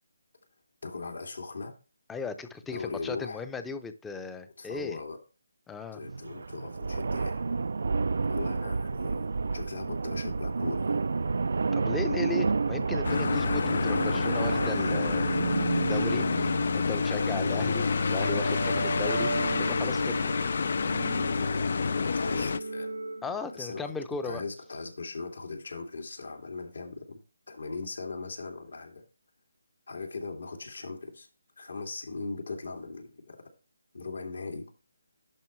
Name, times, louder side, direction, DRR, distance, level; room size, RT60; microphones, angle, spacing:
voice 1, 0.8-1.7 2.7-3.4 4.6-5.2 5.9-7.4 8.3-11.0 16.2-16.5 22.0-22.9 23.5-23.9 24.2-27.2 27.5-29.0 29.9-31.3 31.6-33.4 33.9-34.7, left 3 dB, 75° left, 2 dB, 2.6 m, -39 dB
voice 2, 2.1-5.0 5.7-6.0 11.7-15.3 15.7-16.2 16.7-19.3 19.6-20.2 23.2-24.4, left 4 dB, 5° left, 10 dB, 0.6 m, -36 dB
sound 1, 6.0-16.2, right 4 dB, 65° right, 0.4 m, -30 dB
sound 2, 13.0-22.6, left 5 dB, 55° left, 0.4 m, -28 dB
sound 3, 15.1-24.1, right 3 dB, 85° right, 1.4 m, -35 dB
11.0 x 5.4 x 3.2 m, 0.33 s
figure-of-eight pair, 160°, 0 cm